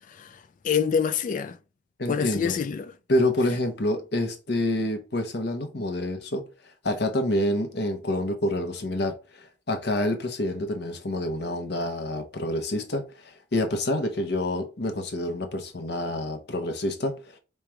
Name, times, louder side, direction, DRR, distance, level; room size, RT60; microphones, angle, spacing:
voice 1, 0.1-1.6 2.1-2.9, left 7 dB, 45° left, 0.3 m, -27 dB
voice 2, 2.0-2.6 3.1-6.4 6.8-17.4, left 1 dB, 65° left, 1.0 m, -27 dB
3.5 x 3.3 x 4.5 m
head